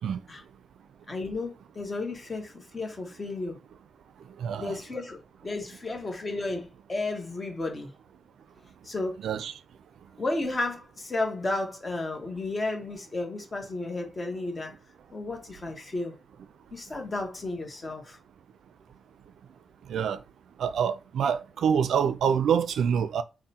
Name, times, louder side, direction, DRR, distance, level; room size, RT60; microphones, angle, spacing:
voice 1, 1.1-3.6 4.6-5.2 5.4-7.9 8.8-9.2 10.2-14.8 15.1-16.2 16.7-18.2, left 2 dB, 25° left, 0.9 m, -33 dB
voice 2, 4.4-4.8 9.2-9.5 19.9-20.2 20.6-23.2, right 7 dB, 90° right, 0.4 m, -26 dB
3.6 x 2.1 x 4.2 m
wide cardioid pair, 150°, 0 cm